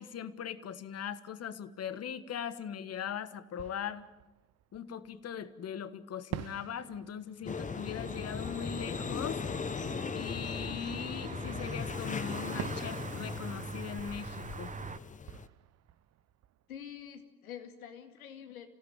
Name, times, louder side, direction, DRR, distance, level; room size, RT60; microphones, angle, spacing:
voice 1, 0.0-4.1 4.7-9.4 10.1-14.7, left 8 dB, 35° left, 15 dB, 1.4 m, -40 dB
Fireworks, 2.9-3.0 3.5-5.5 6.3-11.7 12.6-17.3, right 12 dB, 35° right, 0.9 m, -49 dB
sound 1, 7.5-15.5, left 5 dB, 20° left, 0.9 m, -38 dB
sound 2, 7.5-15.0, right 5 dB, 15° right, 1.3 m, -44 dB
voice 2, 16.7-18.7, left 9 dB, 75° left, 7 dB, 2.4 m, -46 dB
27.0 x 17.0 x 8.8 m, 1.1 s
figure-of-eight pair, 65°, 43 cm